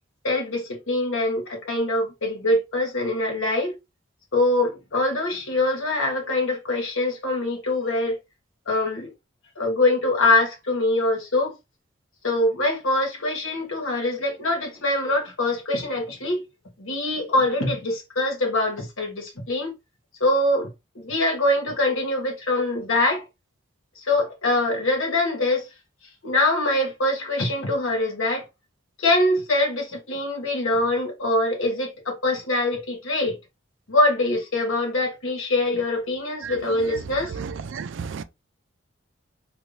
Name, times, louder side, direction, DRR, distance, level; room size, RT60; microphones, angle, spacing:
voice 1, 0.2-3.8 4.3-8.2 8.7-9.1 9.6-11.5 12.2-16.4 16.8-19.7 20.2-20.7 20.9-23.2 24.0-25.6 26.2-28.4 29.0-33.4 33.9-37.3, left 2 dB, 85° left, 1.3 m, -23 dB
voice 2, 37.3-38.2, right 6 dB, 70° right, 0.4 m, -33 dB
3.2 x 2.5 x 3.2 m
head